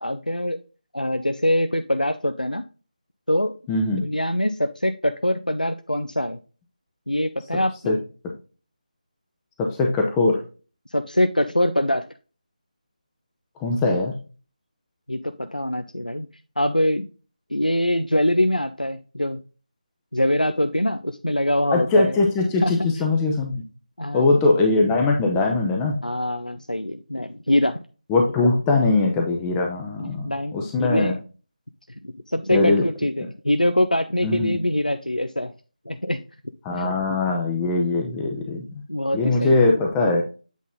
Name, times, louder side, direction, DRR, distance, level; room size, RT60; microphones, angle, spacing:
voice 1, 0.0-0.6 0.9-2.6 3.3-3.5 3.9-6.4 7.1-7.9 10.9-12.0 15.1-16.3 16.6-17.1 17.5-19.4 20.1-22.2 22.6-22.9 24.0-24.3 26.0-27.8 30.0-31.2 32.3-35.5 35.9-36.2 36.8-37.2 38.9-39.6, left 1 dB, 90° left, 8 dB, 0.6 m, -23 dB
voice 2, 3.7-4.0 7.9-8.0 9.6-10.4 13.6-14.1 21.7-23.6 24.1-26.0 28.1-31.1 32.5-32.8 34.2-34.6 36.6-38.7 39.1-40.2, left 3 dB, 5° left, 1 dB, 0.6 m, -21 dB
8.2 x 4.1 x 3.6 m, 0.34 s
figure-of-eight pair, 160°, 4 cm